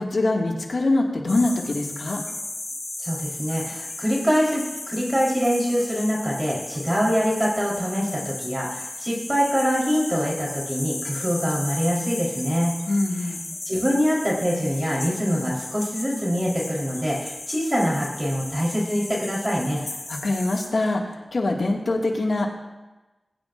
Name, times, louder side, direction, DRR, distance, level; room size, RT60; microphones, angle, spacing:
voice 1, 0.0-2.2 12.9-13.5 20.1-22.5, left 2 dB, 75° left, 0 dB, 2.0 m, -24 dB
sound 1, 1.3-20.7, left 2 dB, 50° left, 4.6 m, -35 dB
voice 2, 3.0-12.7 13.7-19.8, equal, 25° right, -4 dB, 3.8 m, -24 dB
20.5 x 10.0 x 2.5 m, 1.1 s
cardioid pair, 50°, 0 cm